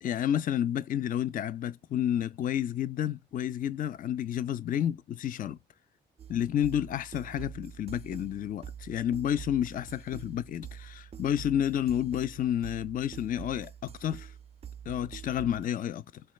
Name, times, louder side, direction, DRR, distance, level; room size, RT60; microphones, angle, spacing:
voice 1, 0.0-5.6 6.3-14.3 14.9-16.2, left 10 dB, 45° left, 0.4 m, -30 dB
sound 1, 6.2-15.6, right 8 dB, 30° right, 0.3 m, -46 dB
4.1 x 2.2 x 2.3 m
cardioid pair, 90°, 20 cm